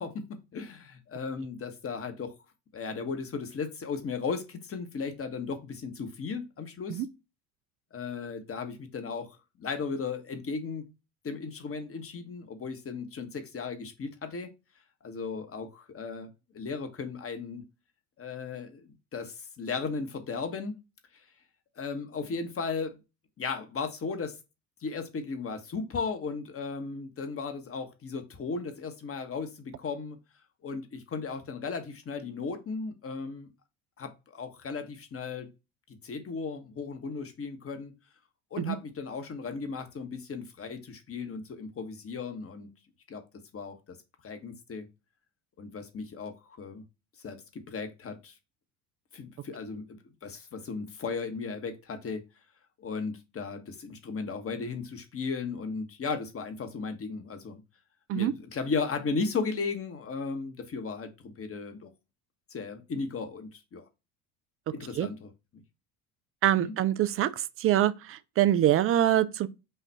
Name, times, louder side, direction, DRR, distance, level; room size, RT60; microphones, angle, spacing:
voice 1, 0.0-2.3 2.7-7.0 7.9-10.9 11.2-14.5 15.0-16.3 16.5-17.6 18.2-20.7 21.1-21.2 21.8-23.0 23.4-24.4 24.8-30.2 30.6-33.5 34.0-35.5 35.9-37.9 38.5-42.7 43.1-43.2 43.5-44.0 44.2-44.9 45.6-46.8 47.2-48.3 49.1-52.2 52.8-57.6 58.1-61.9 62.5-63.9 64.7-65.6 66.6-66.7, left 4 dB, 30° left, 1.2 m, -36 dB
voice 2, 66.4-67.3 67.6-69.5, right 12 dB, 30° right, 0.4 m, -24 dB
5.6 x 2.5 x 3.3 m
hypercardioid pair, 80°, 46 cm